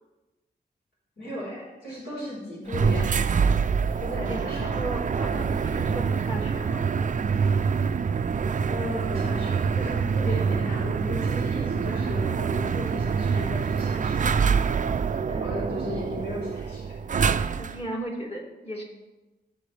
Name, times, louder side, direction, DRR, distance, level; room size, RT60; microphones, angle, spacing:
voice 1, 1.2-3.4 4.0-4.8 8.7-14.8 15.2-17.0, left 1 dB, 75° left, -5 dB, 4.4 m, -36 dB
sound 1, 2.7-17.9, right 6 dB, 50° right, 0.4 m, -25 dB
voice 2, 4.2-6.9 11.8-12.1 17.6-18.8, right 1 dB, 35° left, -3 dB, 2.7 m, -36 dB
16.5 x 7.6 x 3.3 m, 1.1 s
wide cardioid pair, 95°, 17 cm